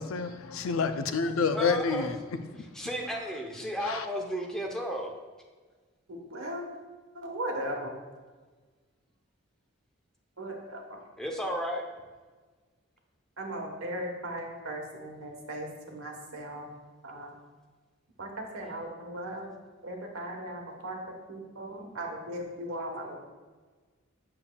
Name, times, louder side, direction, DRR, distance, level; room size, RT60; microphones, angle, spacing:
voice 1, 0.0-2.2 3.8-4.1, left 5 dB, 75° left, 9 dB, 0.4 m, -28 dB
voice 2, 1.5-2.1 2.7-5.1 11.2-11.8, equal, 5° left, 0 dB, 0.7 m, -33 dB
voice 3, 6.1-6.6 7.1-7.9 10.4-11.0 13.4-16.7 17.0-17.3 18.2-19.5 19.8-21.0 21.3-23.1, right 1 dB, 85° right, 2 dB, 1.2 m, -37 dB
7.1 x 6.6 x 2.3 m, 1.4 s
head